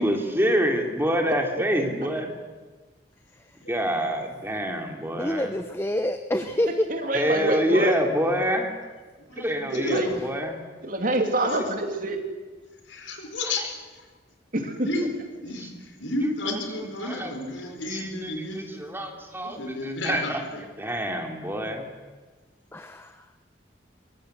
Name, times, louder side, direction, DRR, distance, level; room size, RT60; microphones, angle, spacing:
voice 1, 0.0-2.3 3.7-5.5 7.1-8.8 9.4-10.6 13.4-13.7 14.9-15.1 15.6-15.7 16.2-17.3 17.6-20.4 20.8-21.9, equal, 10° right, 3 dB, 2.8 m, -27 dB
voice 2, 5.2-6.9 22.7-23.2, left 1 dB, 10° left, 9 dB, 0.8 m, -27 dB
voice 3, 6.7-7.9 9.7-10.1 10.8-12.2 14.5-14.9, right 1 dB, 45° right, 4 dB, 3.0 m, -26 dB
voice 4, 9.2-10.1 11.4-11.6 12.9-13.7 13.9-14.1 14.8-15.1 15.4-18.8 19.3-20.6, left 1 dB, 75° left, 4 dB, 4.5 m, -33 dB
23.0 x 22.5 x 7.9 m, 1.3 s
head